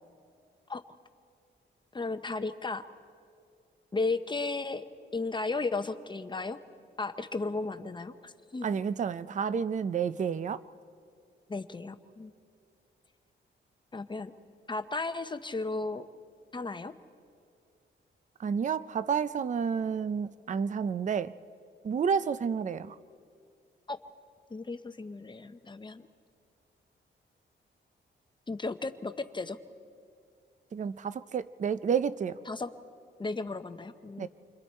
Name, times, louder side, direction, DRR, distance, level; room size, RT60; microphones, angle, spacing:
voice 1, 1.9-2.8 3.9-4.8 5.1-6.6 7.0-8.7 11.5-12.3 13.9-14.3 14.7-16.1 16.5-16.9 23.9-24.0 24.5-26.1 28.5-29.6 32.5-32.7 33.2-34.3, left 3 dB, 25° left, 9 dB, 0.8 m, -34 dB
voice 2, 8.6-10.6 18.4-21.3 21.8-23.0 30.7-32.4 34.2-34.3, right 6 dB, 40° right, 15 dB, 0.5 m, -30 dB
29.0 x 25.0 x 4.4 m, 2.3 s
wide cardioid pair, 125°, 20 cm